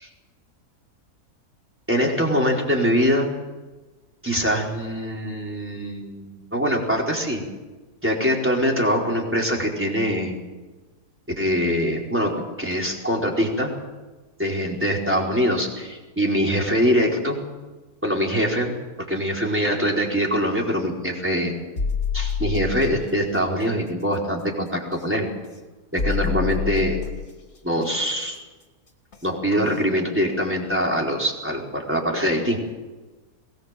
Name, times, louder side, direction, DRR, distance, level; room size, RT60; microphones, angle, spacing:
voice 1, 1.9-3.3 4.2-7.4 8.0-10.4 11.4-13.7 14.4-17.4 18.0-18.7 19.1-21.5 22.1-25.3 25.9-27.0 27.6-28.4 29.2-32.6, equal, 5° right, -1 dB, 4.6 m, -23 dB
sound 1, 21.8-23.0 24.9-25.0 26.0-27.3 29.1-29.2 29.7-29.8, left 6 dB, 55° left, 2.7 m, -26 dB
22.5 x 19.5 x 7.5 m, 1.2 s
omnidirectional pair, 1.6 m